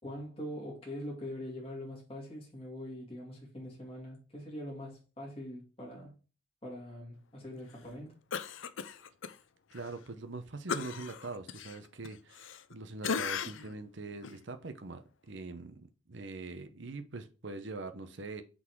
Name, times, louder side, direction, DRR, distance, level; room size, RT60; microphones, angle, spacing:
voice 1, 0.0-6.1 6.6-8.2, left 1 dB, 30° left, 2.4 m, -43 dB
Cough, 8.3-9.3 9.7-9.9 10.7-12.7 13.0-13.7 14.2-14.4, left 6 dB, 70° left, 0.5 m, -37 dB
voice 2, 9.7-18.4, right 3 dB, 60° right, 0.8 m, -43 dB
6.0 x 4.0 x 4.6 m
head